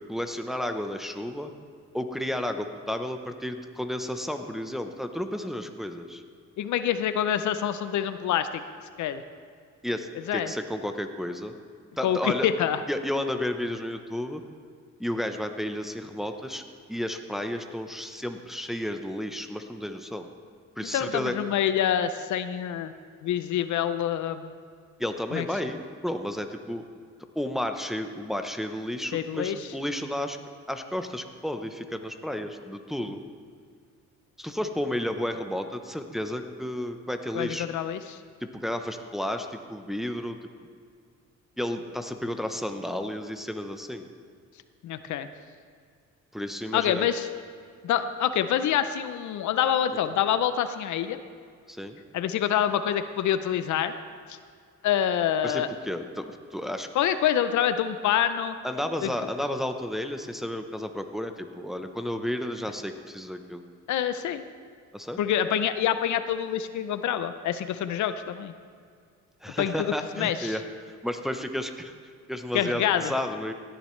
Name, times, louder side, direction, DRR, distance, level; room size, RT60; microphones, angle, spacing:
voice 1, 0.1-1.5 1.9-6.2 9.8-11.5 12.0-12.5 12.9-14.4 15.0-16.6 16.9-20.3 20.8-21.3 25.0-26.8 27.4-30.4 30.7-33.2 34.4-37.7 38.4-40.4 41.6-44.1 46.3-47.1 51.7-52.0 55.4-56.9 58.6-63.6 64.9-65.2 69.4-71.9 72.3-73.5, left 1 dB, ahead, 6 dB, 0.8 m, -32 dB
voice 2, 6.6-8.5 9.0-9.2 10.3-10.5 12.0-12.8 20.9-22.9 23.2-24.5 25.3-25.4 29.1-29.6 37.3-38.2 44.8-45.3 46.7-47.3 47.8-51.2 52.1-53.9 54.3-54.4 54.8-55.7 56.9-58.6 59.0-59.1 63.9-64.4 65.2-68.5 69.6-70.5 72.5-73.1, left 10 dB, 75° left, 11 dB, 0.6 m, -26 dB
17.5 x 10.5 x 3.2 m, 2.1 s
cardioid pair, 90°, 30 cm